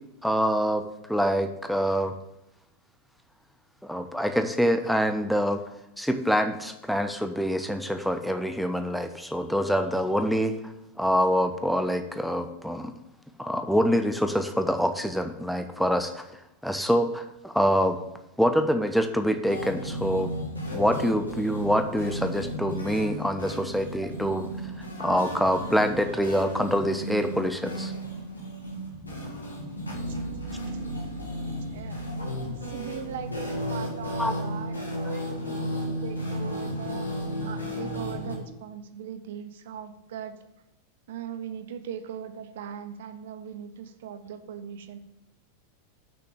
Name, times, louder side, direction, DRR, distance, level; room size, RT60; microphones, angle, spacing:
voice 1, 0.2-2.2 3.8-5.6 6.0-10.6 11.0-12.9 13.4-16.2 16.6-18.0 18.4-20.3 20.7-24.5 25.0-27.9 34.2-34.3, equal, ahead, 8 dB, 0.6 m, -25 dB
sound 1, 19.5-38.4, equal, 80° left, 1.8 m, -34 dB
voice 2, 30.1-31.1 31.7-35.8 36.0-37.1 37.4-40.3 41.1-45.0, right 8 dB, 55° right, 10 dB, 0.6 m, -40 dB
6.2 x 5.9 x 7.1 m, 0.89 s
figure-of-eight pair, 90°, 0 cm